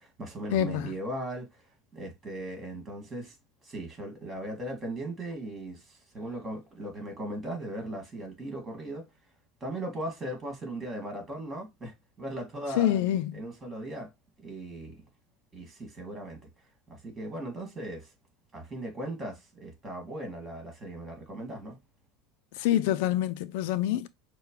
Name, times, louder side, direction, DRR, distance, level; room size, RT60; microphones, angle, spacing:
voice 1, 0.0-1.6 1.9-3.3 3.6-9.1 9.6-13.0 13.3-14.1 14.4-15.0 15.5-16.5 16.9-18.1 18.5-21.8, right 1 dB, 20° right, 2.3 m, -38 dB
voice 2, 0.5-0.9 12.8-13.4 22.6-24.1, left 12 dB, 70° left, 0.4 m, -26 dB
6.5 x 2.2 x 3.1 m
supercardioid pair, 130°, 0 cm